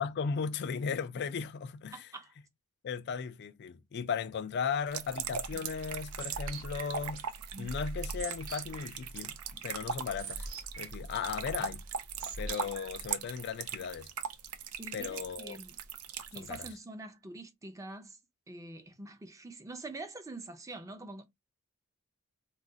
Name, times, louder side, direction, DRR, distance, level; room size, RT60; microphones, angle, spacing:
voice 1, 0.0-2.1 2.8-7.3 7.6-9.4 9.6-10.5 10.8-11.8 12.4-14.1 14.9-15.6 16.4-16.7, left 6 dB, 50° left, 0.3 m, -36 dB
voice 2, 1.9-2.3 14.8-15.8 16.3-18.2 18.5-21.2, right 2 dB, 15° right, 0.5 m, -45 dB
sound 1, 4.9-16.7, right 7 dB, 85° right, 0.5 m, -40 dB
sound 2, 5.2-13.1, right 2 dB, 65° right, 1.0 m, -44 dB
2.4 x 2.4 x 3.8 m
head